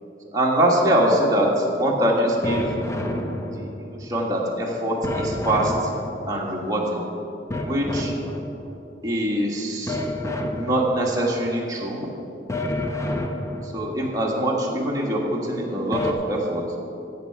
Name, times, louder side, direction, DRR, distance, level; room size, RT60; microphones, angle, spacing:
voice 1, 0.3-2.7 3.5-5.9 6.3-7.0 7.6-8.1 9.0-10.0 10.5-12.1 13.6-16.6, right 1 dB, 20° right, -3 dB, 1.6 m, -23 dB
sound 1, 2.4-4.0 5.0-6.6 7.5-8.8 9.9-11.2 12.5-14.0 15.9-16.1, left 1 dB, 15° left, 0.6 m, -29 dB
15.5 x 6.9 x 4.7 m, 2.9 s
head